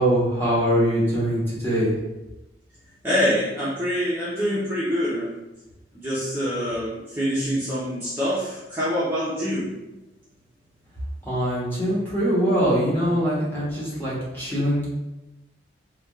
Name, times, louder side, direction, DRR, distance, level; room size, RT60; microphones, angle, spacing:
voice 1, 0.0-1.9 11.3-14.9, equal, 10° left, -8 dB, 0.9 m, -22 dB
voice 2, 3.0-5.3 5.9-9.7, equal, 15° right, -10 dB, 0.5 m, -25 dB
3.4 x 2.2 x 2.3 m, 1.0 s
head